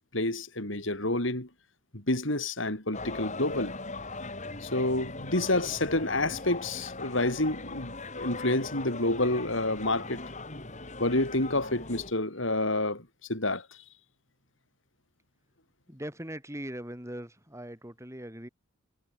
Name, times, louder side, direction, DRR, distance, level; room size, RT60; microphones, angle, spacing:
voice 1, 0.1-1.5 1.9-3.8 4.6-10.2 11.0-13.7, left 2 dB, 65° left, 5.3 m, -29 dB
sound 1, 2.9-12.1, left 3 dB, 35° left, 6.2 m, -40 dB
voice 2, 15.9-18.5, right 1 dB, 15° right, 6.7 m, -40 dB
head